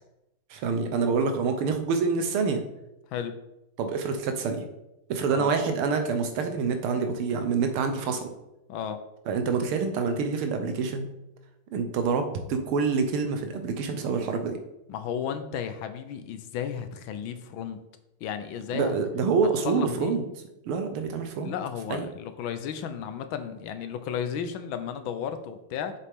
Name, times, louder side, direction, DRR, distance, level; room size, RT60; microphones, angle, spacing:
voice 1, 0.5-2.6 3.8-4.6 5.1-8.3 9.3-11.1 11.7-14.6 18.7-20.2 20.7-21.5 21.9-22.1, right 5 dB, 90° right, 7 dB, 1.8 m, -27 dB
voice 2, 8.7-9.0 14.9-17.8 18.2-18.9 19.6-20.2 21.4-25.9, left 8 dB, 75° left, 9 dB, 1.4 m, -33 dB
7.2 x 6.7 x 3.6 m, 0.90 s
omnidirectional pair, 2.3 m